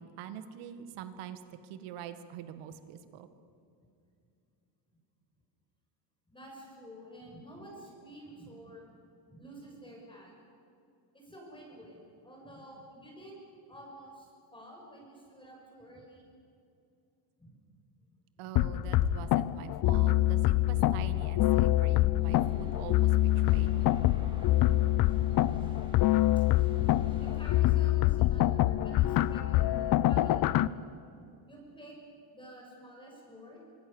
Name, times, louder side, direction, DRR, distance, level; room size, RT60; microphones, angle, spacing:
voice 1, 0.0-3.3 18.4-24.0, right 9 dB, 85° right, 10 dB, 2.0 m, -44 dB
voice 2, 6.3-8.8 9.3-10.3 11.1-13.4 13.7-16.3 17.4-17.5 20.2-20.4 26.2-26.4 27.2-30.8 31.5-31.9 32.3-33.6, right 1 dB, 10° left, -1 dB, 6.3 m, -50 dB
sound 1, 18.6-30.7, left 15 dB, 45° left, 0.6 m, -26 dB
sound 2, 22.2-27.7, right 1 dB, 10° right, 3.2 m, -52 dB
25.5 x 24.5 x 7.2 m, 2.5 s
cardioid pair, 160°, 49 cm